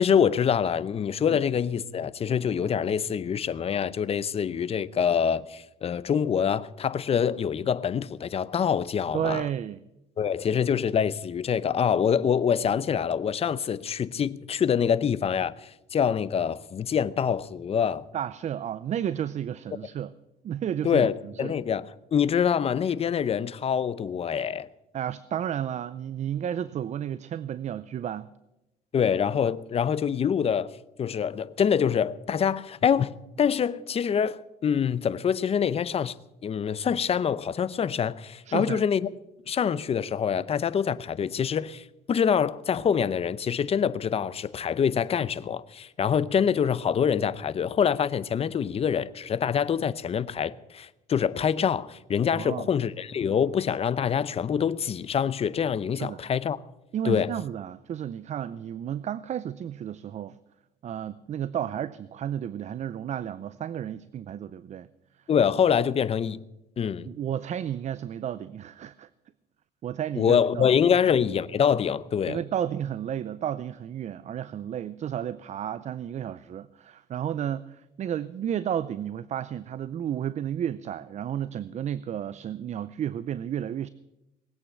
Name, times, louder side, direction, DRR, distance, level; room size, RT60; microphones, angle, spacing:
voice 1, 0.0-9.4 10.2-18.1 20.8-24.7 28.9-30.7 31.0-36.2 36.4-39.1 39.5-56.6 57.0-57.3 65.3-66.4 66.8-67.1 70.2-72.4, left 7 dB, 35° left, 0.7 m, -25 dB
voice 2, 9.1-9.8 18.1-20.2 20.4-21.5 24.9-28.3 38.5-38.8 52.3-52.7 56.0-56.2 56.9-60.4 60.8-64.9 65.8-65.9 67.0-69.1 69.8-71.0 72.2-83.9, right 10 dB, 45° right, 0.5 m, -32 dB
20.0 x 8.6 x 7.9 m
cardioid pair, 110°, 17 cm